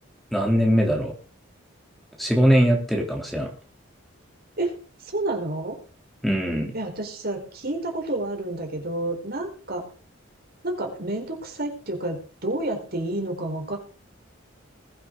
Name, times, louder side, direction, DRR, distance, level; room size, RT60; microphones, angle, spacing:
voice 1, 0.3-1.1 2.2-3.5 6.2-6.7, equal, ahead, 0 dB, 3.2 m, -21 dB
voice 2, 5.1-5.8 6.7-9.8 10.6-12.2 12.4-13.8, right 2 dB, 45° right, 3 dB, 4.4 m, -29 dB
21.0 x 8.7 x 3.8 m, 0.38 s
head